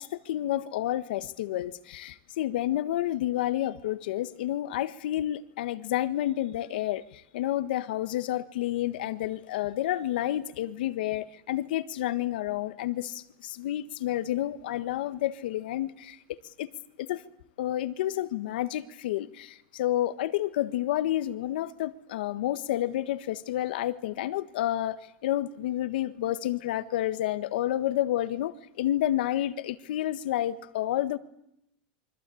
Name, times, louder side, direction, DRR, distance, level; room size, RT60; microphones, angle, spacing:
voice 1, 0.0-16.7 17.0-17.2 17.6-31.2, left 13 dB, 80° left, 13 dB, 1.5 m, -30 dB
27.5 x 24.5 x 8.6 m, 0.80 s
supercardioid pair, 145°, 5 cm